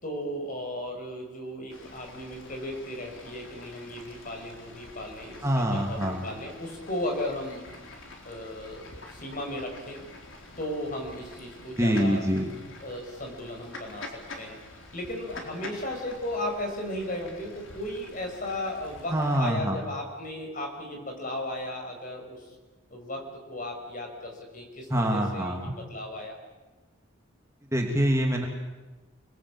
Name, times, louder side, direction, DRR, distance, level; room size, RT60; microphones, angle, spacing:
voice 1, 0.0-7.6 8.2-10.0 10.6-12.2 12.8-14.1 14.4-14.6 14.9-22.4 22.9-26.4, left 1 dB, 40° left, 2 dB, 6.0 m, -35 dB
Fowl / Bird, 1.7-19.4, left 2 dB, 65° left, 4.3 m, -47 dB
voice 2, 5.4-6.3 11.8-12.5 19.1-19.8 24.9-25.6 27.7-28.4, equal, 15° right, 1 dB, 2.7 m, -25 dB
28.5 x 20.5 x 8.9 m, 1.2 s
head